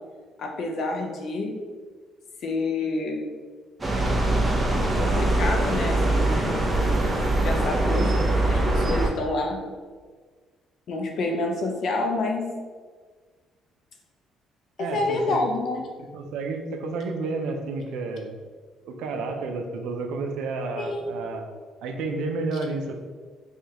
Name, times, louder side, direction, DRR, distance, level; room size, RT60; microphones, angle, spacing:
voice 1, 0.4-1.6 2.4-3.2 5.0-6.7 7.4-9.7 10.9-12.5 14.8-15.9 20.8-21.0, left 2 dB, 55° left, 2 dB, 0.5 m, -28 dB
sound 1, 3.8-9.1, right 2 dB, 20° right, 0.6 m, -22 dB
voice 2, 14.8-15.4 16.1-18.4 18.8-21.5 21.8-22.9, right 3 dB, 90° right, 4 dB, 0.4 m, -31 dB
4.8 x 2.3 x 2.9 m, 1.5 s
cardioid pair, 130°, 0 cm